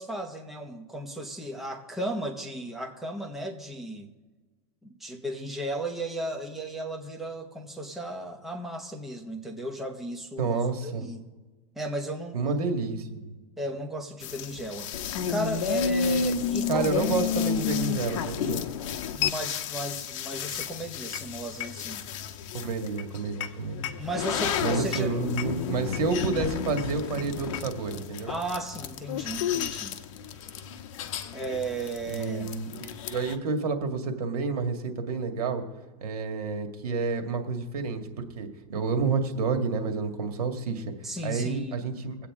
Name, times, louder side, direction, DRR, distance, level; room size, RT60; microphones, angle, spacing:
voice 1, 0.0-4.1 4.8-10.6 10.8-11.2 11.8-12.6 13.6-17.0 19.1-22.0 23.8-25.2 28.3-30.0 31.3-32.5 41.0-41.8, right 1 dB, ahead, 1 dB, 0.8 m, -35 dB
voice 2, 10.4-11.1 12.3-13.4 16.7-18.6 22.5-23.9 24.6-28.3 32.1-35.6 36.0-40.8 41.2-42.3, right 4 dB, 80° right, 6 dB, 2.0 m, -29 dB
sound 1, 14.2-33.4, left 8 dB, 55° left, 1.0 m, -32 dB
22.5 x 8.5 x 3.6 m, 1.3 s
supercardioid pair, 165°, 19 cm